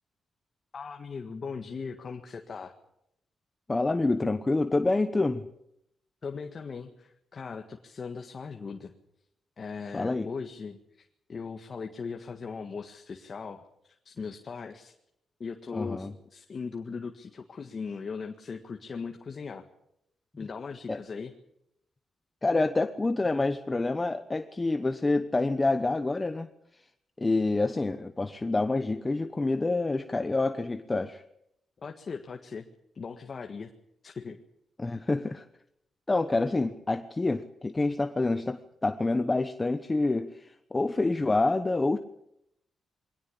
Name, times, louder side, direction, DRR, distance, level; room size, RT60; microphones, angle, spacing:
voice 1, 0.7-2.7 6.2-8.9 9.6-14.9 15.4-19.6 20.4-21.3 31.8-32.6 32.9-33.7 34.0-34.4, left 5 dB, 40° left, 4 dB, 1.7 m, -39 dB
voice 2, 3.7-5.4 9.9-10.3 15.7-16.1 20.9-21.0 22.4-26.5 26.7-26.9 27.2-31.2 34.8-35.4 36.1-42.0, left 2 dB, 20° left, 9 dB, 1.0 m, -27 dB
22.5 x 18.0 x 8.7 m, 0.79 s
cardioid pair, 115°, 0 cm